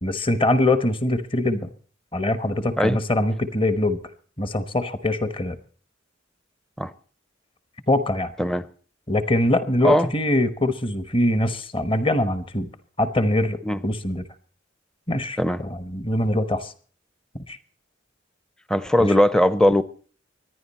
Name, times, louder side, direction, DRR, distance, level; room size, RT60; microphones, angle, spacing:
voice 1, 0.0-1.7 2.1-4.0 4.4-5.6 7.9-8.3 9.1-12.7 13.0-14.2 15.1-16.7 17.5-17.6 19.0-19.1, left 1 dB, 25° left, 1.1 m, -23 dB
voice 2, 18.7-19.8, left 1 dB, 5° left, 0.6 m, -19 dB
25.0 x 10.5 x 4.2 m
head